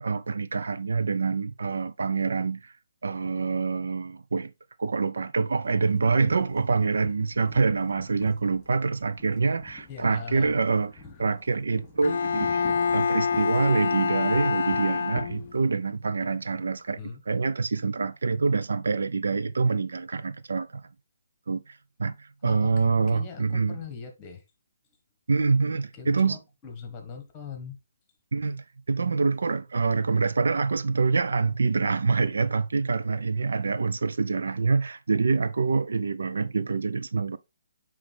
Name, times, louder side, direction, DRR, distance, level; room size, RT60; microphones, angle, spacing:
voice 1, 0.0-2.7 3.0-4.5 4.8-10.9 11.2-17.0 17.3-20.8 21.5-23.8 25.3-26.4 28.3-37.4, right 4 dB, 80° right, 0.5 m, -26 dB
sound 1, 5.6-15.6, left 2 dB, 5° left, 3.3 m, -47 dB
voice 2, 9.9-10.5 17.0-17.2 22.4-24.4 25.9-27.8, left 6 dB, 20° left, 1.5 m, -41 dB
Bowed string instrument, 12.0-15.7, left 6 dB, 55° left, 0.6 m, -26 dB
8.9 x 3.2 x 3.4 m
hypercardioid pair, 155°, 0 cm